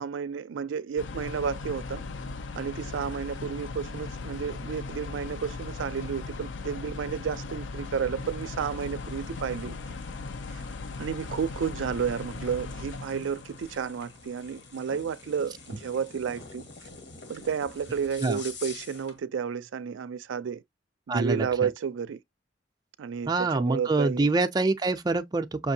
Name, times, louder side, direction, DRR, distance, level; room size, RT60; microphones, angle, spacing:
voice 1, 0.0-2.0 2.6-9.8 10.5-10.6 11.0-16.6 17.3-20.6 21.1-22.2 23.0-24.3, right 7 dB, 90° right, 0.4 m, -31 dB
sound 1, 1.0-15.1 15.3-15.6 16.2-16.4 17.4-17.5 18.0-18.8 19.1-19.2, left 3 dB, 85° left, 0.5 m, -38 dB
sound 2, 8.2-19.2, left 4 dB, 65° left, 1.4 m, -48 dB
voice 2, 21.1-21.7 23.3-25.7, right 3 dB, 20° right, 0.4 m, -26 dB
5.8 x 2.6 x 2.7 m
head